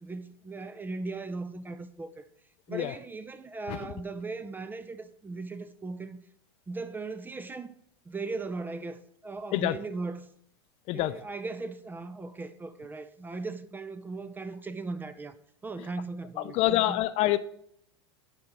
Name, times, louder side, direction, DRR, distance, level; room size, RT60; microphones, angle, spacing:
voice 1, 0.0-2.2 2.7-6.2 6.7-7.7 8.1-10.3 10.9-15.3 15.6-17.0, right 3 dB, 15° right, 0.4 m, -38 dB
voice 2, 10.9-11.2 16.4-17.4, left 15 dB, 45° left, 0.5 m, -26 dB
9.5 x 4.4 x 5.1 m
hypercardioid pair, 110°, 15 cm